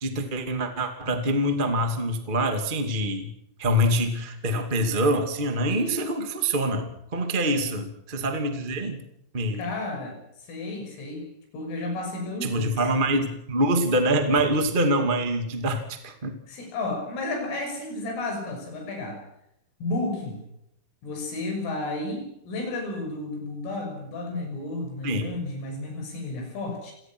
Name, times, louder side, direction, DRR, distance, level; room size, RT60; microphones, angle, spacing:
voice 1, 0.0-3.3 3.6-9.0 9.3-9.7 12.4-16.4 25.0-25.3, right 1 dB, 25° right, 6 dB, 1.0 m, -25 dB
voice 2, 9.6-10.2 10.5-12.8 16.5-19.2 19.8-20.4 21.0-26.9, left 2 dB, 85° left, 3 dB, 8.9 m, -32 dB
29.0 x 18.5 x 6.2 m, 0.79 s
omnidirectional pair, 5.7 m